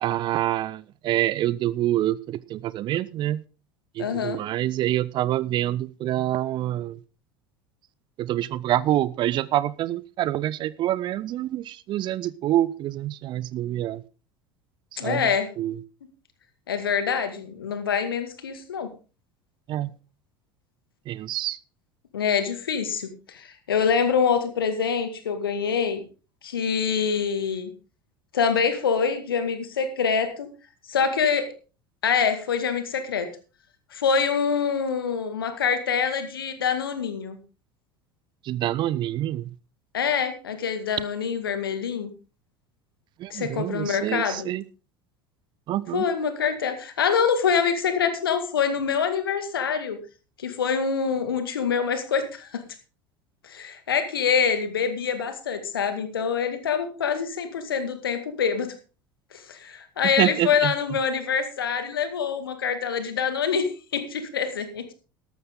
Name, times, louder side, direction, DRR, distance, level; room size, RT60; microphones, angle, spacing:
voice 1, 0.0-3.4 4.0-7.0 8.2-14.0 15.0-15.3 15.6-15.8 19.7-19.9 21.1-21.6 38.4-39.5 43.2-44.6 45.7-46.0 60.2-60.7, right 13 dB, 40° right, 20 dB, 0.7 m, -26 dB
voice 2, 4.0-4.4 15.0-15.5 16.7-18.9 22.1-26.0 26.4-27.7 28.3-30.5 30.9-31.5 32.0-33.3 33.9-37.4 39.9-42.1 43.3-44.5 45.9-50.0 50.4-52.6 53.4-58.7 59.3-64.9, left 6 dB, 75° left, 9 dB, 2.1 m, -25 dB
13.5 x 12.0 x 3.8 m, 0.34 s
figure-of-eight pair, 70°, 12 cm